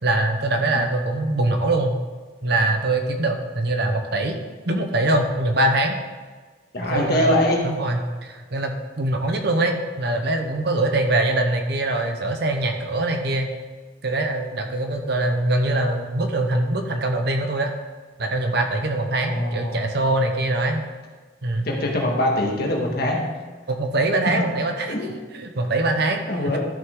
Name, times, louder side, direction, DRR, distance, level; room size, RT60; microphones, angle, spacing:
voice 1, 0.0-2.0 2.4-4.4 4.6-6.0 6.8-7.3 7.6-13.5 14.0-17.7 18.2-20.8 21.4-21.7 23.7-25.0 25.3-26.6, right 2 dB, 60° right, 4 dB, 1.0 m, -23 dB
voice 2, 6.7-7.6 19.2-19.8 21.6-23.3 24.9-25.1 26.3-26.6, left 1 dB, 55° left, -1 dB, 1.8 m, -23 dB
13.0 x 5.8 x 3.8 m, 1.4 s
head